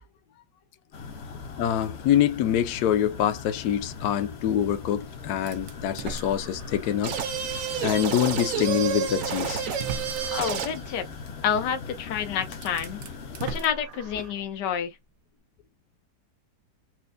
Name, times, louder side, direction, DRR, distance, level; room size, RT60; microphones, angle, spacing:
sound 1, 0.9-13.6, left 4 dB, 55° left, 0.7 m, -40 dB
voice 1, 1.6-7.2 7.8-9.7, left 10 dB, 75° left, 1.1 m, -25 dB
sound 2, 5.5-7.1 7.6-7.7 8.9-9.0 9.6-10.6 12.0-12.1 12.5-14.5, right 6 dB, 80° right, 0.6 m, -39 dB
sound 3, 7.0-10.9, right 7 dB, 60° right, 1.0 m, -30 dB
voice 2, 10.3-11.0 11.4-13.0 13.4-15.0, left 8 dB, 90° left, 1.4 m, -28 dB
4.4 x 2.2 x 2.5 m
omnidirectional pair, 1.8 m